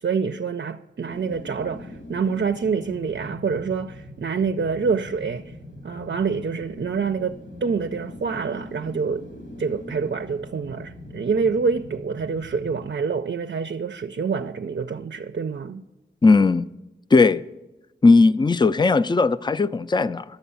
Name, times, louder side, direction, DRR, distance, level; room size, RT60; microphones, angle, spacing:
voice 1, 0.0-5.5 5.8-9.3 9.6-15.8, right 5 dB, 65° right, 0.4 m, -26 dB
sound 1, 1.1-14.1 14.5-14.6, left 1 dB, 85° left, 2.2 m, -42 dB
voice 2, 16.2-16.7 17.1-17.4 18.0-20.2, left 3 dB, 25° left, 0.3 m, -17 dB
11.0 x 8.0 x 6.9 m
wide cardioid pair, 60°, 19 cm